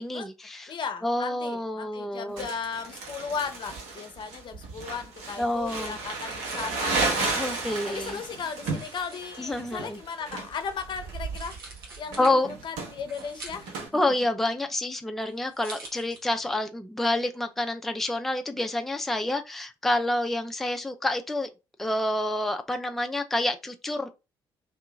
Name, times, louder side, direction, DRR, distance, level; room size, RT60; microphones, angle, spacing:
voice 1, 0.0-0.7 1.0-2.5 5.4-6.0 7.4-8.2 9.4-10.0 12.2-12.5 13.9-21.5 21.8-24.1, left 1 dB, ahead, 0.4 m, -28 dB
voice 2, 0.7-7.4 7.9-11.5 12.0-13.9, left 6 dB, 40° left, 0.6 m, -36 dB
Crumpling crinkling, 2.4-13.9, right 3 dB, 65° right, 1.0 m, -33 dB
sound 1, 6.0-16.6, right 3 dB, 80° right, 0.7 m, -47 dB
2.7 x 2.4 x 3.6 m
figure-of-eight pair, 45°, 12 cm